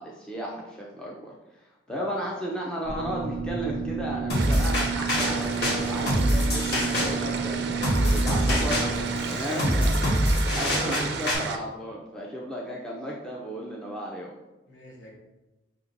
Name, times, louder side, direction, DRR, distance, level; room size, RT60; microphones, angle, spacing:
voice 1, 0.0-9.9 10.5-14.3, equal, 5° left, -4 dB, 0.4 m, -34 dB
sound 1, 2.8-9.2, right 5 dB, 20° left, 1.3 m, -31 dB
sound 2, 4.3-11.3, equal, 55° left, 1.3 m, -25 dB
sound 3, 4.3-11.6, right 5 dB, 60° right, 0.4 m, -33 dB
voice 2, 9.1-10.4 14.7-15.2, equal, 75° left, -3 dB, 1.2 m, -43 dB
5.9 x 2.8 x 2.6 m, 1.1 s
head